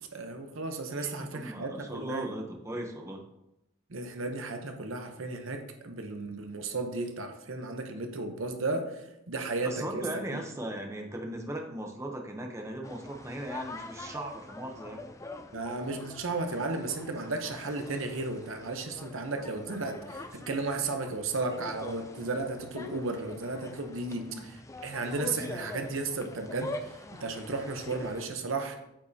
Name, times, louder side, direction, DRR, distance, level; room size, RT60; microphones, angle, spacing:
voice 1, 0.1-2.3 3.9-10.0 10.3-10.4 15.5-28.8, right 3 dB, 65° right, 5 dB, 0.9 m, -34 dB
voice 2, 1.0-3.2 9.6-15.0 24.1-24.4, right 1 dB, 15° right, 2 dB, 0.8 m, -38 dB
sound 1, 12.8-28.3, left 2 dB, 15° left, 0.3 m, -44 dB
8.4 x 5.3 x 2.8 m, 0.88 s
head